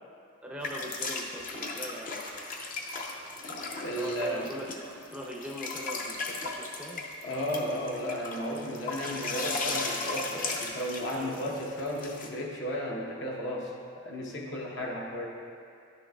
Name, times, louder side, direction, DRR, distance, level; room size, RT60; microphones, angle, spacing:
voice 1, 0.4-2.5 3.9-4.7 5.0-7.0 11.1-11.5, equal, 5° right, -3 dB, 0.5 m, -41 dB
sound 1, 0.6-12.3, left 3 dB, 40° left, 0.6 m, -36 dB
voice 2, 3.8-4.5 7.2-13.7 14.0-15.3, equal, 60° left, -1 dB, 0.9 m, -34 dB
11.0 x 6.1 x 2.3 m, 2.5 s
head